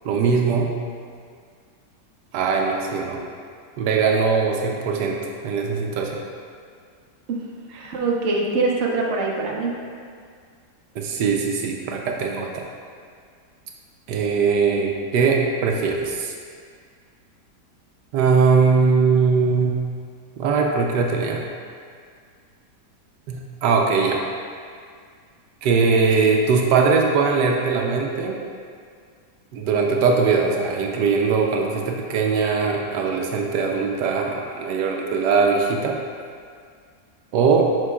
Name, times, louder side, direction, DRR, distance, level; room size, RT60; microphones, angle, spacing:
voice 1, 0.0-0.7 2.3-3.2 3.8-5.2 5.4-6.2 10.9-12.7 14.1-16.3 18.1-19.8 20.4-21.4 23.3-24.2 25.6-28.4 29.5-36.0 37.3-37.7, right 5 dB, 75° right, 0 dB, 1.2 m, -20 dB
voice 2, 7.7-9.7, right 3 dB, 55° right, -2 dB, 0.9 m, -23 dB
7.6 x 5.9 x 2.3 m, 2.1 s
omnidirectional pair, 1.9 m